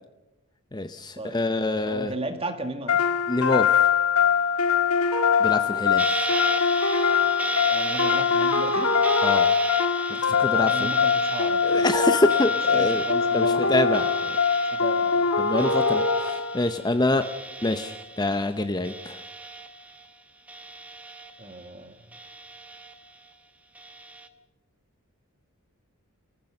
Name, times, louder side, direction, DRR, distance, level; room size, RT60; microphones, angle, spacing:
voice 1, 0.7-2.1 3.3-3.9 5.4-6.0 9.2-9.5 10.2-10.9 11.6-13.0 13.3-14.4 15.4-17.2 17.6-19.2, left 2 dB, 20° left, 9 dB, 0.7 m, -26 dB
voice 2, 1.8-3.0 7.7-8.9 10.1-14.1 14.7-15.3 15.6-15.8 21.4-22.2, right 2 dB, 25° right, 7 dB, 2.0 m, -36 dB
sound 1, 2.9-16.7, left 6 dB, 75° left, 1.6 m, -22 dB
sound 2, 6.0-18.6 18.8-20.1 20.5-21.7 22.1-23.2 23.8-24.3, right 2 dB, 5° right, 1.1 m, -35 dB
29.0 x 15.0 x 6.6 m, 1.0 s
head